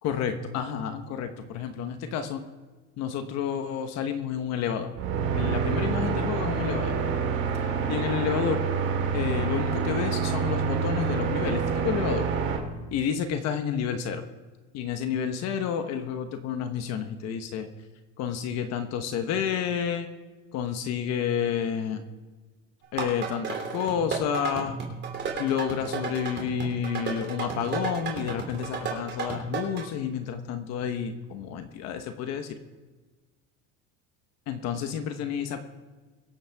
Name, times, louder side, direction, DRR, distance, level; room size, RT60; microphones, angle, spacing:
voice 1, 0.0-2.4 3.0-4.9 5.3-7.0 7.9-8.6 9.1-12.3 12.9-14.2 14.7-17.7 18.2-20.1 20.5-22.0 22.9-24.8 25.4-32.6 34.5-35.6, left 8 dB, 55° left, 7 dB, 1.2 m, -30 dB
sound 1, 4.9-12.6, right 6 dB, 50° right, 2.8 m, -27 dB
sound 2, 22.8-29.8, right 5 dB, 35° right, 3.1 m, -33 dB
23.5 x 8.7 x 3.6 m, 1.3 s
cardioid pair, 160°, 32 cm